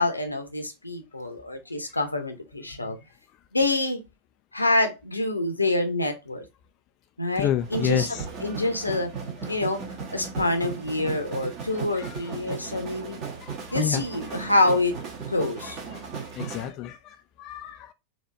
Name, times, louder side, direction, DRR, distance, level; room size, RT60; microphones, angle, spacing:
voice 1, 0.0-3.0 3.5-4.0 4.5-6.4 7.2-8.1 8.4-9.1 9.5-9.8 10.1-13.2 13.7-14.9 15.3-15.8, left 2 dB, 85° left, 0.9 m, -26 dB
voice 2, 7.4-8.2 12.0-12.3 13.4-14.0 14.3-14.5 15.6-16.1 16.4-17.9, left 11 dB, 40° left, 0.3 m, -30 dB
sound 1, 7.6-16.7, right 5 dB, 40° right, 1.5 m, -36 dB
4.2 x 2.9 x 3.2 m
figure-of-eight pair, 90°, 0 cm